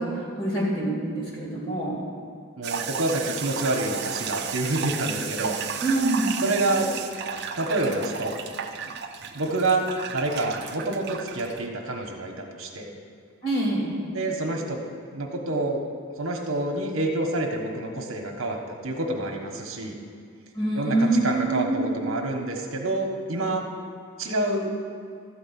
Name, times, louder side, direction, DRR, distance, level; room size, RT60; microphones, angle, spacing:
voice 1, 0.0-2.0 5.8-6.4 13.4-14.0 20.5-21.9, right 2 dB, 25° left, -6 dB, 3.0 m, -25 dB
sound 1, 2.6-11.6, right 7 dB, 50° right, 0.6 m, -33 dB
voice 2, 2.6-5.6 6.4-6.9 7.6-8.3 9.3-12.9 14.1-14.8 15.1-15.8 16.2-20.0 20.7-23.7 24.2-24.7, right 2 dB, 65° right, 1 dB, 1.3 m, -27 dB
13.0 x 5.1 x 8.6 m, 2.3 s
head